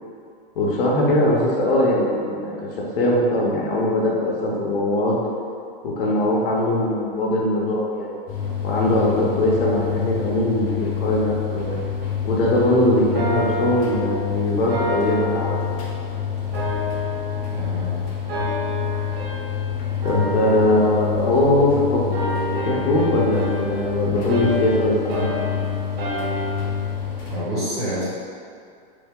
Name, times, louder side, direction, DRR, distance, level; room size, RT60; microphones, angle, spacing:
voice 1, 0.6-2.7 3.0-5.2 5.8-8.2 8.6-10.7 11.0-11.8 12.2-15.6 20.0-22.2 22.5-25.3, left 1 dB, 70° left, -4 dB, 0.8 m, -21 dB
sound 1, 8.3-27.4, left 8 dB, 35° left, 0.6 m, -28 dB
sound 2, 13.1-16.1 16.5-17.9 18.3-19.7 20.0-21.7 22.1-26.8, right 1 dB, 80° right, 0.8 m, -29 dB
voice 2, 17.5-18.0 27.3-28.0, right 1 dB, ahead, -16 dB, 1.0 m, -27 dB
3.3 x 2.1 x 3.5 m, 2.3 s
supercardioid pair, 160°, 29 cm